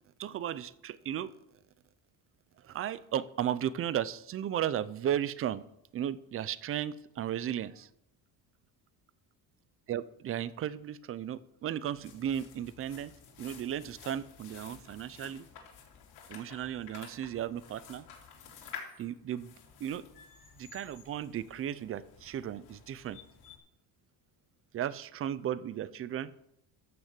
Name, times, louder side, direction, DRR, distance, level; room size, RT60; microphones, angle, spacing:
voice 1, 0.2-1.3 2.6-5.6 5.9-7.9 9.9-13.1 13.4-15.5 16.3-18.1 19.0-19.5 19.8-20.0 20.6-23.2 24.7-26.3, right 10 dB, 35° right, 0.5 m, -35 dB
sound 1, 11.8-23.6, left 7 dB, 75° left, 3.5 m, -51 dB
14.0 x 6.5 x 7.5 m
cardioid pair, 175°, 40 cm